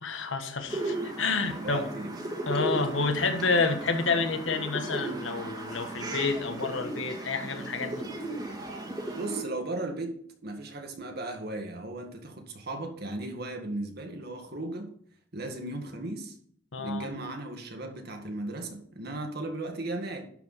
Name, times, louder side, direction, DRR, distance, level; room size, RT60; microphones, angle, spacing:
voice 1, 0.0-1.9 2.5-8.0 16.7-17.1, left 4 dB, 80° left, 7 dB, 1.4 m, -29 dB
sound 1, 0.7-9.4, right 1 dB, 20° right, 1.8 m, -36 dB
voice 2, 1.5-2.1 9.1-10.1 10.4-14.9 15.3-16.4 16.8-20.3, right 2 dB, 55° right, 3 dB, 1.9 m, -36 dB
11.5 x 4.7 x 5.7 m, 0.63 s
head